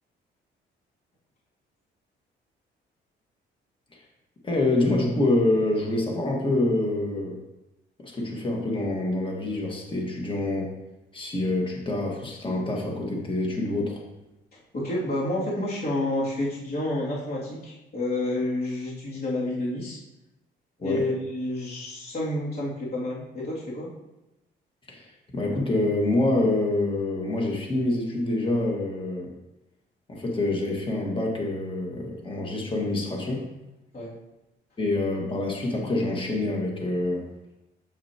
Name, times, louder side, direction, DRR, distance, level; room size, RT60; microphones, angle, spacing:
voice 1, 4.4-7.4 8.0-10.7 11.1-14.0 20.8-21.1 24.9-29.3 30.1-33.5 34.8-37.3, left 2 dB, 25° left, -1 dB, 1.7 m, -26 dB
voice 2, 14.5-20.0 20.8-23.9 33.9-34.1, left 1 dB, 50° left, -7 dB, 2.6 m, -29 dB
7.0 x 6.6 x 2.9 m, 0.94 s
cardioid pair, 90°, 20 cm